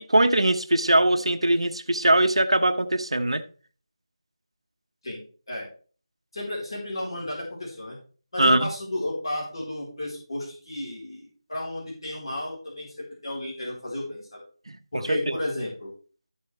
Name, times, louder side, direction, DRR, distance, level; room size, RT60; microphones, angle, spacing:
voice 1, 0.0-3.4 8.4-8.7 14.7-14.8 15.1-15.4, right 1 dB, 75° right, 0.9 m, -21 dB
voice 2, 6.3-8.0 8.3-14.4 14.9-15.9, left 1 dB, 55° left, 4.2 m, -33 dB
13.0 x 5.6 x 3.3 m
figure-of-eight pair, 160°, 3 cm